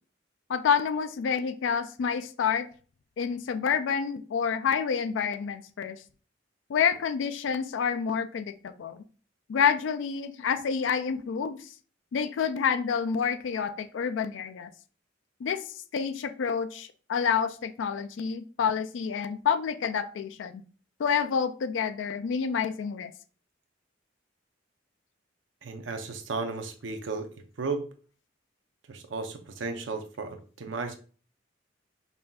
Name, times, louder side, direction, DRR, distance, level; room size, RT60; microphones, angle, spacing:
voice 1, 0.5-2.7 3.2-6.0 6.7-9.0 9.5-11.7 12.1-14.7 15.4-15.6 15.9-20.6 21.0-23.1, left 6 dB, 75° left, 10 dB, 0.3 m, -28 dB
voice 2, 25.6-27.3 27.6-27.8 28.9-30.9, right 4 dB, 85° right, 6 dB, 0.6 m, -34 dB
5.5 x 2.6 x 2.3 m, 0.39 s
head